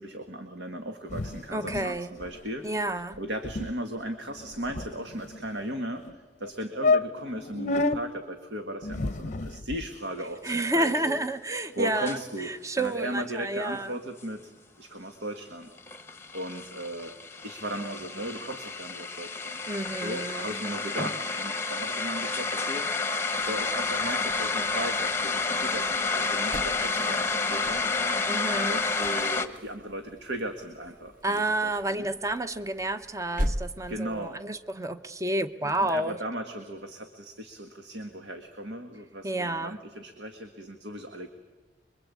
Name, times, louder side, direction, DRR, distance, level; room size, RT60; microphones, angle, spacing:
voice 1, 0.0-2.6 3.2-6.0 6.4-11.2 11.8-14.5 14.8-15.7 16.3-17.1 17.4-19.6 20.0-22.9 23.5-27.9 28.7-32.1 33.9-34.4 35.6-41.3, right 1 dB, 70° right, 5 dB, 1.8 m, -37 dB
sound 1, 1.1-1.9 2.2-2.4 2.7-2.9 3.1-3.2 3.4-3.7 4.3-5.4 6.0-6.1 6.5-6.6 6.8-8.0 8.8-9.8, left 3 dB, 40° left, 0.7 m, -29 dB
voice 2, 1.5-2.1 2.6-3.2 10.4-14.0 19.7-20.6 28.3-28.8 31.2-36.2 39.2-39.7, right 1 dB, 15° right, 10 dB, 0.9 m, -30 dB
sound 2, 12.1-12.2 15.8-29.5, left 4 dB, 15° left, 1.2 m, -30 dB
sound 3, 23.3-34.4, equal, 45° right, 1.2 m, -40 dB
26.5 x 23.0 x 8.4 m, 1.3 s
head